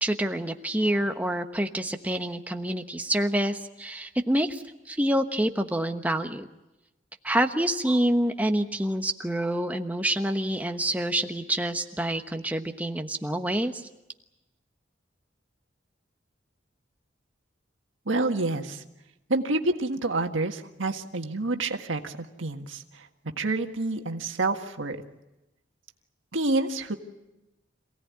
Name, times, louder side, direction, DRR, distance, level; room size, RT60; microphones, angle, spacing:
voice 1, 0.0-6.5 7.2-13.9, right 1 dB, 10° right, 5 dB, 1.1 m, -27 dB
voice 2, 18.1-18.8 19.3-22.8 23.4-25.0 26.3-27.0, right 2 dB, 90° right, 5 dB, 1.7 m, -28 dB
27.0 x 17.0 x 9.6 m, 1.0 s
head